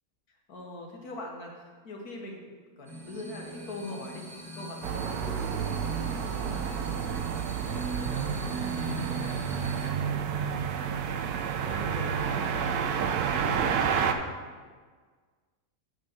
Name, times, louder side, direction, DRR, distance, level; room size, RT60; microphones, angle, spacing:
voice 1, 0.5-2.4 2.8-4.3 4.6-5.7 6.0-10.3 10.7-11.1 11.6-14.4, left 2 dB, 90° left, 0 dB, 1.8 m, -42 dB
sound 1, 2.8-9.9, right 1 dB, ahead, 0.9 m, -40 dB
sound 2, 4.8-14.1, right 7 dB, 85° right, 1.2 m, -30 dB
6.7 x 5.2 x 6.5 m, 1.5 s
omnidirectional pair, 1.6 m